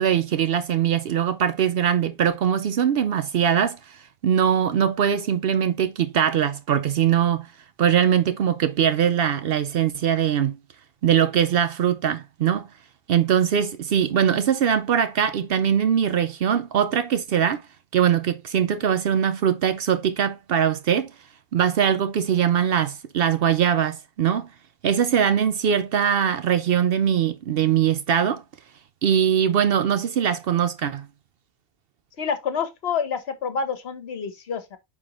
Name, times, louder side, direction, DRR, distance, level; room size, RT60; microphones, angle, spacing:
voice 1, 0.0-7.5 7.8-10.6 11.0-12.7 13.1-17.6 17.9-21.1 21.5-24.5 24.8-28.4 29.0-31.1, right 8 dB, 65° right, 0.5 m, -21 dB
voice 2, 32.2-34.8, left 6 dB, 50° left, 1.2 m, -28 dB
8.7 x 3.6 x 3.0 m
omnidirectional pair, 1.4 m